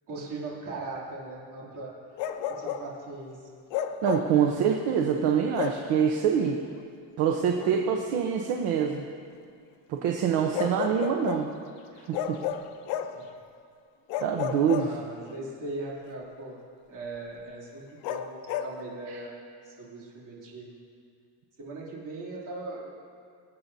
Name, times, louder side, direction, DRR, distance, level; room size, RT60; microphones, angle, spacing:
voice 1, 0.1-1.9 2.5-3.4 13.1-13.3 14.8-16.6 16.9-20.7 21.6-22.9, right 2 dB, 45° right, -5 dB, 2.9 m, -39 dB
Bark, 2.2-2.9 3.7-4.4 5.5-5.9 7.6-7.8 10.5-11.5 12.1-13.2 14.1-15.4 18.0-18.8, left 9 dB, 80° left, 0.8 m, -32 dB
voice 2, 4.0-6.6 7.2-9.0 9.9-11.5 12.1-12.4 14.2-14.9, right 7 dB, 70° right, 2 dB, 0.9 m, -25 dB
23.5 x 8.6 x 2.7 m, 2.3 s
cardioid pair, 175°, 43 cm